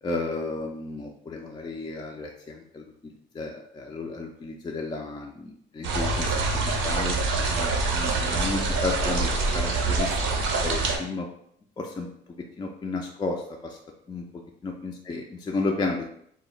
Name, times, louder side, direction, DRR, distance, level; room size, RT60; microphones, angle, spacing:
voice 1, 0.0-2.9 3.3-6.4 6.7-10.2 10.6-11.3 11.8-12.1 12.4-13.8 14.1-14.3 14.6-16.0, left 3 dB, 20° left, 1 dB, 0.3 m, -33 dB
sound 1, 5.8-11.0, right 3 dB, 80° right, 0.6 m, -25 dB
2.1 x 2.0 x 3.8 m, 0.68 s
cardioid pair, 90°, 20 cm